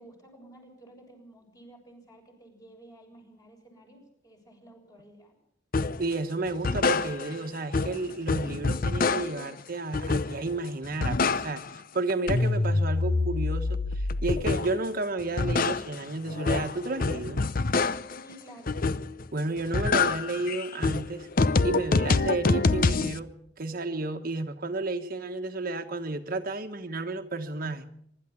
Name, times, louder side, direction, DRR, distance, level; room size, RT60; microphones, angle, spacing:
voice 1, 0.0-5.4 18.1-18.8, right 1 dB, 20° left, 2 dB, 7.1 m, -52 dB
sound 1, 5.7-6.0 6.5-7.5 7.7-9.5 9.9-10.6 10.8-11.8 12.1-14.8 15.2-18.2 18.7-19.3 19.6-23.2, left 3 dB, 50° left, 0.7 m, -26 dB
voice 2, 6.0-11.6 11.9-17.5 19.3-21.3 21.6-23.3 23.6-27.9, right 2 dB, 50° right, 6 dB, 1.2 m, -32 dB
24.5 x 13.0 x 8.4 m, 0.72 s
head